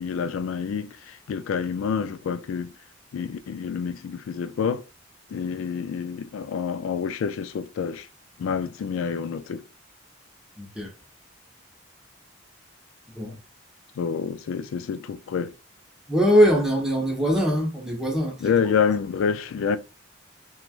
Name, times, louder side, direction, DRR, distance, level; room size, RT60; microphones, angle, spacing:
voice 1, 0.0-2.7 3.1-4.8 5.3-8.1 8.4-9.6 14.0-15.5 18.4-19.8, left 6 dB, 85° left, 0.3 m, -27 dB
voice 2, 10.6-10.9 13.2-13.4 16.1-18.4, equal, ahead, 0.7 m, -21 dB
3.0 x 2.3 x 2.3 m
head